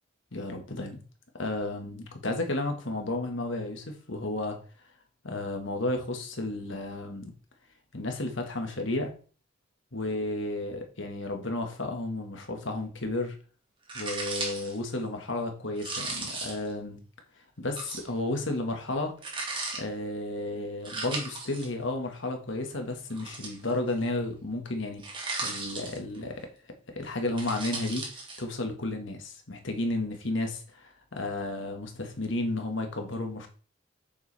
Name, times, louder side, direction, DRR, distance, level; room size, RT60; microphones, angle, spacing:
voice 1, 0.3-1.0 1.4-4.6 5.2-7.3 7.9-9.1 9.9-13.4 13.9-17.0 17.6-19.2 19.7-26.5 26.9-28.1 28.4-33.5, left 2 dB, 70° left, 4 dB, 1.9 m, -32 dB
sound 1, 13.9-14.8 15.8-16.7 17.8-18.1 19.2-19.8 20.9-21.7 23.1-23.9 25.0-26.2 27.2-28.4, right 3 dB, 25° right, 2.1 m, -36 dB
8.4 x 7.0 x 3.5 m, 0.38 s
head